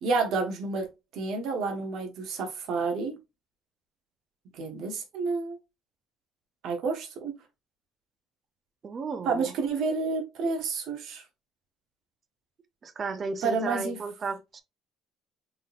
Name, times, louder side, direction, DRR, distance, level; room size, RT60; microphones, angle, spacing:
voice 1, 0.0-3.2 4.5-5.6 6.6-7.3 9.2-11.2 13.4-14.0, right 4 dB, 50° right, 1.1 m, -30 dB
voice 2, 8.8-9.5 12.8-14.6, right 4 dB, 25° right, 0.4 m, -34 dB
4.0 x 3.8 x 2.5 m
cardioid pair, 180°, 0 cm